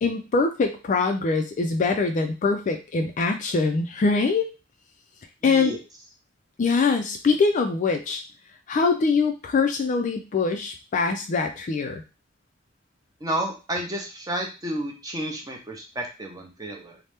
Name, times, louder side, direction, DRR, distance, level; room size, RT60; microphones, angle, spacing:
voice 1, 0.0-4.5 5.4-5.7 6.6-8.2 8.7-12.0, left 4 dB, 40° left, 6 dB, 0.3 m, -23 dB
voice 2, 5.4-5.8 13.2-17.0, right 1 dB, 20° right, 1 dB, 0.6 m, -31 dB
2.8 x 2.1 x 3.3 m, 0.31 s
head